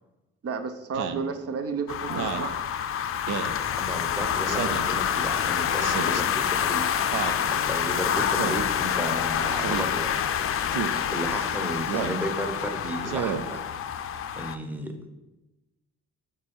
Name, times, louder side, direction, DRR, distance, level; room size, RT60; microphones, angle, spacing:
voice 1, 0.4-2.6, right 5 dB, 50° right, 8 dB, 0.8 m, -32 dB
Speech synthesizer, 0.9-1.3 2.1-2.5 3.3-3.6 4.5-4.9 5.8-6.2 7.1-7.4 8.4-8.7 9.6-9.9 10.7-11.0 11.9-12.2 13.0-13.4, right 8 dB, 90° right, 0.6 m, -31 dB
sound 1, 1.9-14.6, left 8 dB, 45° left, 0.5 m, -27 dB
voice 2, 3.8-6.9 7.4-10.4 11.1-13.6 14.3-15.1, equal, 5° right, 5 dB, 0.9 m, -33 dB
6.5 x 3.4 x 5.3 m, 1.0 s
cardioid pair, 90°, 30 cm